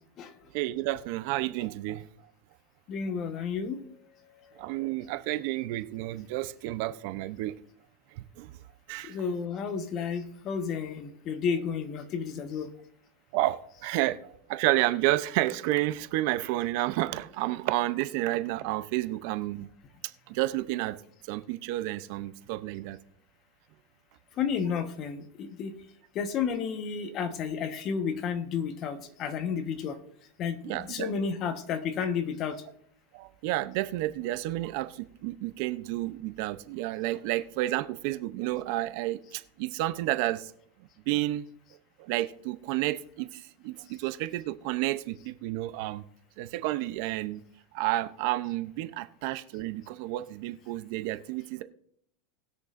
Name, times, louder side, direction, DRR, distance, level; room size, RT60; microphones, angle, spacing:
voice 1, 0.5-2.0 4.6-7.6 8.4-8.5 8.9-9.2 13.3-19.7 20.3-21.0 21.3-23.0 30.6-31.1 33.1-40.5 41.1-41.4 42.0-46.0 46.4-47.4 47.7-51.6, right 16 dB, 60° right, 0.6 m, -30 dB
voice 2, 2.9-3.8 9.0-12.7 24.4-25.7 26.1-29.9 30.4-32.6, left 6 dB, 40° left, 1.2 m, -31 dB
20.0 x 6.6 x 2.6 m
supercardioid pair, 130°, 0 cm